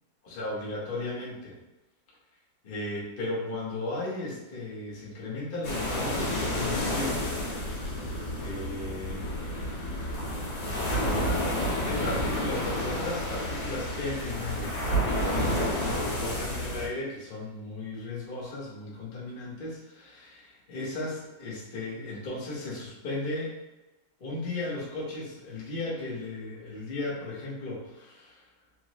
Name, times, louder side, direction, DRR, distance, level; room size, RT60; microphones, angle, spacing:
voice 1, 0.2-1.6 2.6-7.2 8.3-9.3 10.9-23.5 24.2-28.5, left 2 dB, 50° left, -6 dB, 0.6 m, -36 dB
sound 1, 5.6-16.9, equal, 85° left, 1.9 m, -30 dB
4.4 x 2.0 x 2.8 m, 1.1 s
omnidirectional pair, 2.0 m